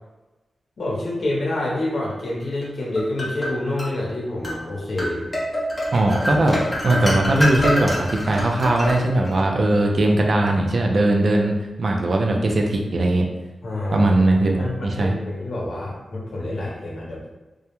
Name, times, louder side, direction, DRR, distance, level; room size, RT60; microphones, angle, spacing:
voice 1, 0.8-5.2 13.6-14.3 14.6-17.3, left 1 dB, 60° left, -4 dB, 0.7 m, -27 dB
sound 1, 2.6-3.9 4.4-4.6 5.0-9.4, equal, 25° left, 0.6 m, -26 dB
voice 2, 5.9-6.6 6.8-13.3 13.9-15.1, right 1 dB, 50° right, 1 dB, 0.4 m, -19 dB
2.3 x 2.1 x 2.9 m, 1.1 s
wide cardioid pair, 130°, 0 cm